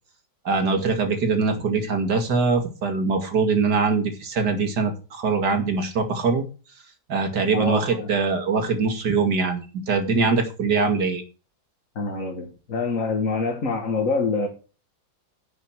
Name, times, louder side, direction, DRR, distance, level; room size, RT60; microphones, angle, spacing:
voice 1, 0.4-6.4 7.1-11.2, right 4 dB, 60° right, 6 dB, 2.7 m, -23 dB
voice 2, 7.5-8.1 12.0-14.5, left 4 dB, 45° left, 3 dB, 2.1 m, -26 dB
10.5 x 8.2 x 6.4 m, 0.34 s
omnidirectional pair, 2.0 m